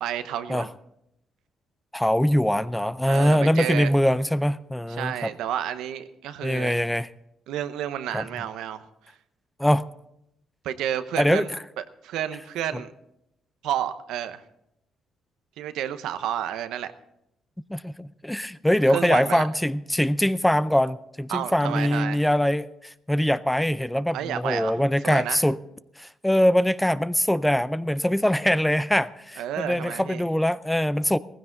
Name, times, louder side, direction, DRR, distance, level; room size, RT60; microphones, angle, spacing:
voice 1, 0.0-0.7 3.1-3.9 5.0-6.8 7.5-8.8 10.6-11.5 11.8-12.9 13.6-14.4 15.6-16.9 18.9-19.5 21.3-22.2 24.1-24.8 25.0-25.4 29.4-30.2, right 10 dB, 90° right, 0.8 m, -30 dB
voice 2, 1.9-5.3 6.4-7.1 8.1-8.3 9.6-9.9 11.2-11.5 12.7-12.8 17.7-25.6 26.0-31.2, equal, 5° left, 0.5 m, -23 dB
17.0 x 15.5 x 3.9 m
cardioid pair, 90°, 0 cm